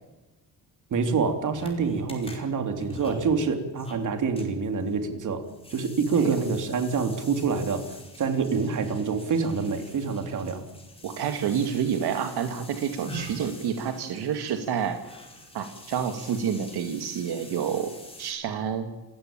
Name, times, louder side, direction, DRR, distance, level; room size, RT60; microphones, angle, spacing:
voice 1, 0.9-5.4 5.7-7.8 8.2-10.6, right 5 dB, 50° right, 7 dB, 3.4 m, -26 dB
sound 1, 1.6-18.3, equal, 15° left, 5.0 m, -45 dB
voice 2, 11.0-15.0 15.5-17.9 18.2-18.9, right 8 dB, 80° right, 7 dB, 2.2 m, -28 dB
28.5 x 15.5 x 8.9 m, 1.1 s
cardioid pair, 155°, 38 cm